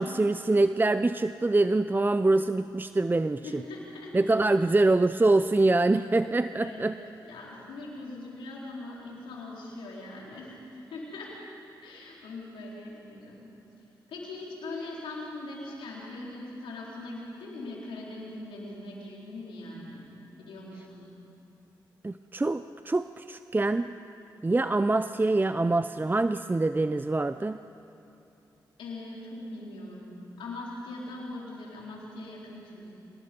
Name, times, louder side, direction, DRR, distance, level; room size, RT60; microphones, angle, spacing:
voice 1, 0.0-3.4 4.1-6.9 22.0-23.9 24.4-27.6, right 2 dB, 25° right, 12 dB, 0.6 m, -25 dB
voice 2, 3.4-4.4 6.6-11.3 11.8-13.5 14.1-20.1 20.4-21.1 28.8-32.9, left 2 dB, 85° left, -4 dB, 4.4 m, -41 dB
25.0 x 20.0 x 5.4 m, 2.9 s
supercardioid pair, 45°, 9 cm